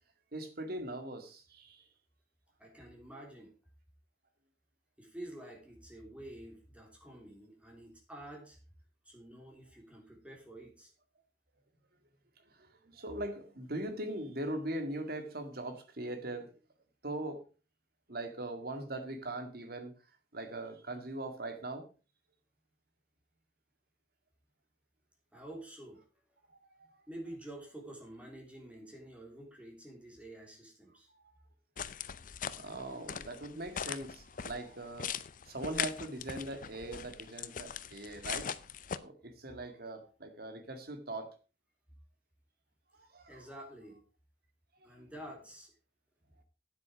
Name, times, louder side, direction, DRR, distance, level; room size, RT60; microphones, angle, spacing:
voice 1, 0.3-1.8 12.5-16.5 17.0-17.4 18.1-19.9 20.3-21.9 26.5-26.9 31.1-31.3 32.6-35.1 35.5-38.5 39.0-41.3 42.9-43.5 44.8-45.0, right 1 dB, 60° right, 7 dB, 2.1 m, -41 dB
voice 2, 2.6-3.5 5.0-8.6 9.1-10.9 25.3-26.1 27.1-31.1 43.3-44.0 44.8-45.7, right 1 dB, 5° right, 0 dB, 3.5 m, -49 dB
sound 1, 31.8-39.0, left 8 dB, 50° left, 0.6 m, -40 dB
9.7 x 8.4 x 5.1 m, 0.35 s
head